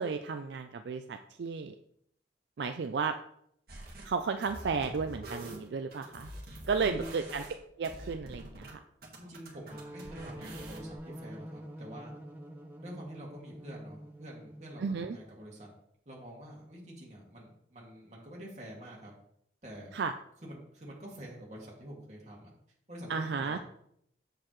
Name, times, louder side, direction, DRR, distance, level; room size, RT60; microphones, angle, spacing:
voice 1, 0.0-1.7 2.6-3.2 4.0-6.3 6.7-7.4 7.8-8.8 14.8-15.2 19.9-20.1 23.1-23.6, right 5 dB, 70° right, 7 dB, 0.4 m, -33 dB
sound 1, 3.7-4.1 4.4-8.7 9.0-11.0, right 1 dB, 55° right, 1.7 m, -46 dB
voice 2, 6.8-7.3 9.2-12.1 12.8-15.7 16.1-19.1 19.6-19.9 20.4-22.5 22.9-23.6, equal, 40° right, -3 dB, 2.2 m, -47 dB
sound 2, 9.7-15.2, right 1 dB, 10° right, 0.7 m, -46 dB
7.6 x 6.6 x 3.1 m, 0.71 s
head